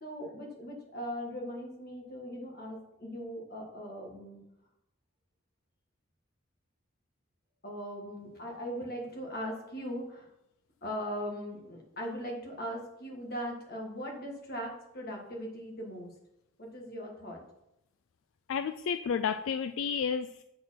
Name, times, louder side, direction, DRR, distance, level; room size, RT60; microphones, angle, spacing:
voice 1, 0.0-4.4 7.6-10.3 10.8-16.1 16.6-17.4, equal, 45° left, -1 dB, 1.8 m, -39 dB
voice 2, 18.5-20.4, left 6 dB, 70° left, 9 dB, 0.3 m, -31 dB
7.5 x 4.4 x 5.7 m, 0.84 s
head